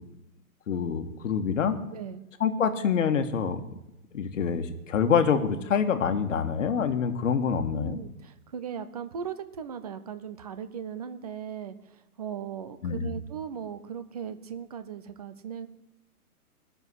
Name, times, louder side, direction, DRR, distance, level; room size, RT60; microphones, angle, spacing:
voice 1, 0.7-1.8 2.4-3.6 4.1-8.0 12.8-13.1, left 6 dB, 55° left, 8 dB, 1.7 m, -26 dB
voice 2, 1.9-2.3 7.4-15.7, right 7 dB, 25° right, 12 dB, 0.6 m, -38 dB
19.0 x 7.0 x 9.8 m, 0.89 s
hypercardioid pair, 165°, 45 cm